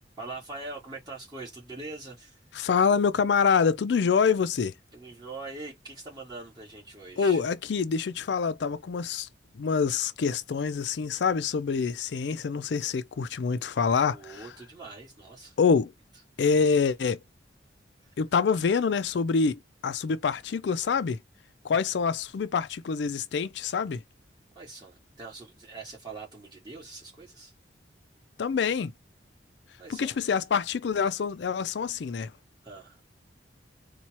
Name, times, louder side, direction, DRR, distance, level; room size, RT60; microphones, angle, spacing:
voice 1, 0.2-2.4 4.1-4.2 4.9-7.4 14.1-15.5 24.5-27.5 29.8-30.2 32.6-33.0, right 3 dB, 25° right, 2.2 m, -43 dB
voice 2, 2.5-4.7 7.2-9.3 9.5-14.5 15.6-15.9 16.4-17.2 18.2-21.2 21.6-24.0 28.4-28.9 29.9-32.3, left 5 dB, 70° left, 0.4 m, -26 dB
4.2 x 2.3 x 2.9 m
head